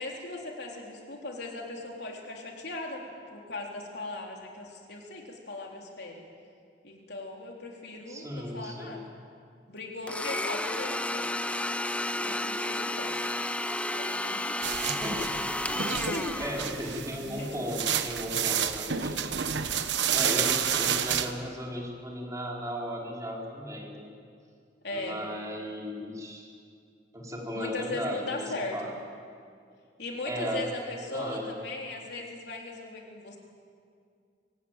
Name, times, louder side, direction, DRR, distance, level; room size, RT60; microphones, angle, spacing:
voice 1, 0.0-6.2 6.8-9.1 9.7-11.3 12.2-13.2 13.9-14.6 15.9-16.4 17.1-17.7 24.8-25.2 27.5-28.8 30.0-33.4, left 2 dB, 65° left, 0 dB, 3.8 m, -38 dB
voice 2, 8.1-9.0 14.8-15.4 16.4-19.3 20.1-24.1 24.9-26.5 27.1-28.9 30.2-30.6 31.1-31.5, equal, 20° right, -2 dB, 4.2 m, -36 dB
Domestic sounds home sounds, 10.1-17.1, left 1 dB, 5° left, 0.7 m, -32 dB
sound 1, 14.6-21.3, right 8 dB, 80° right, 1.2 m, -30 dB
24.5 x 16.5 x 9.2 m, 2.2 s
head